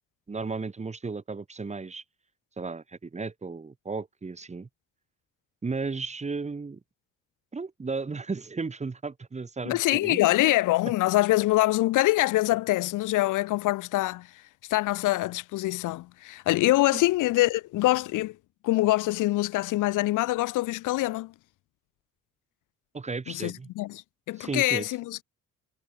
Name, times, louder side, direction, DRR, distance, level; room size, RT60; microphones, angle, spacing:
voice 1, 0.3-2.0 2.6-4.7 5.6-6.8 7.5-10.2 16.9-17.0 22.9-23.7 24.4-24.9, right 4 dB, 25° right, 1.4 m, -34 dB
voice 2, 9.6-14.3 14.7-18.4 18.6-21.3 23.3-25.2, left 17 dB, 90° left, 1.2 m, -25 dB
cardioid pair, 90°, 30 cm